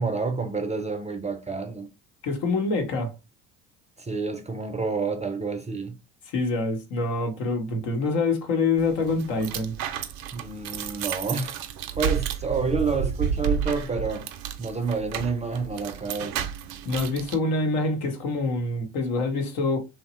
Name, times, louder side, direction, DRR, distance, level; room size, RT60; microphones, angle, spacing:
voice 1, 0.0-1.9 4.0-6.0 10.3-11.6 11.9-14.3 14.6-16.5, right 4 dB, 20° right, 0.5 m, -29 dB
voice 2, 2.2-3.1 6.3-9.8 16.8-19.8, left 3 dB, 70° left, 0.9 m, -26 dB
sound 1, 8.8-17.4, right 8 dB, 65° right, 0.5 m, -31 dB
2.9 x 2.1 x 3.0 m
hypercardioid pair, 60°, 39 cm